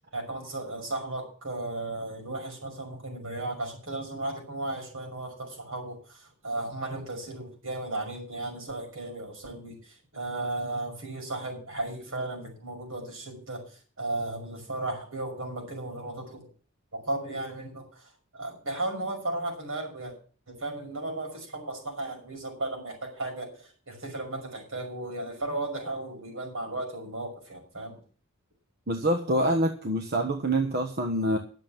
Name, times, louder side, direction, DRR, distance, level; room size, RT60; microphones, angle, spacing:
voice 1, 0.1-16.5 16.9-20.1 20.5-28.0, right 2 dB, 75° right, 2 dB, 5.9 m, -35 dB
voice 2, 28.9-31.4, right 1 dB, 50° right, 4 dB, 1.3 m, -26 dB
11.5 x 7.5 x 7.3 m, 0.41 s
head